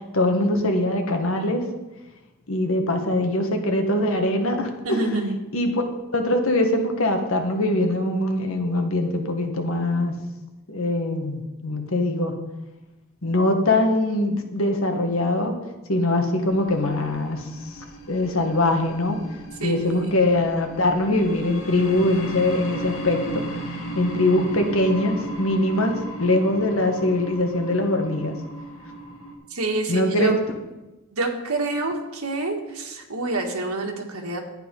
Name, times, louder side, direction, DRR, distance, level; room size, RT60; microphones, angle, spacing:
voice 1, 0.0-1.6 2.5-5.0 5.5-5.8 6.1-10.2 10.7-12.3 13.2-15.5 15.9-17.4 17.7-17.8 18.1-19.2 19.6-23.6 24.0-28.4 29.9-30.3, left 1 dB, 70° left, 4 dB, 1.6 m, -22 dB
voice 2, 4.8-5.4 19.6-20.2 29.5-30.3 31.1-34.4, right 2 dB, 90° right, 3 dB, 1.8 m, -27 dB
sound 1, 16.4-29.3, equal, 85° left, 2.3 m, -35 dB
11.0 x 9.1 x 5.4 m, 1.0 s
head